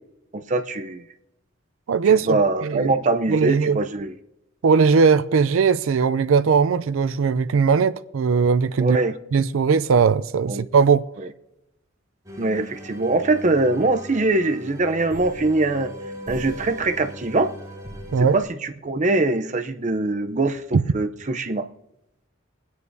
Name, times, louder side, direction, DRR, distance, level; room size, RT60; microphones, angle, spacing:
voice 1, 0.3-1.0 2.1-4.1 8.8-9.2 10.5-10.7 12.4-15.9 16.3-17.5 18.3-21.7, right 2 dB, 35° right, 0.6 m, -23 dB
voice 2, 1.9-2.9 3.3-3.8 4.6-9.0 9.3-11.0 18.1-18.4 20.7-20.8, right 5 dB, 85° right, 0.4 m, -19 dB
sound 1, 12.3-18.4, equal, 20° right, 2.4 m, -38 dB
23.0 x 9.5 x 2.7 m
head